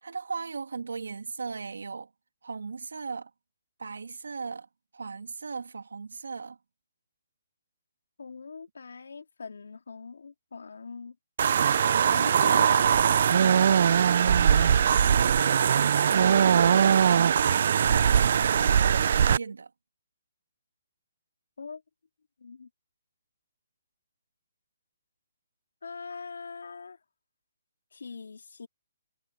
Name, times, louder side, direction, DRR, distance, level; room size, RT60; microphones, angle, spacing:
voice 1, 0.0-2.1 2.4-3.3 3.8-4.7 4.9-6.6 15.0-19.7, right 4 dB, 80° right, 2.8 m, -38 dB
voice 2, 8.2-11.1 12.0-13.6 21.6-21.8 22.4-22.7 25.8-27.0 27.9-28.7, left 5 dB, 80° left, 3.0 m, -42 dB
sound 1, 11.4-19.4, right 8 dB, 55° right, 0.6 m, -21 dB
hypercardioid pair, 150°, 0 cm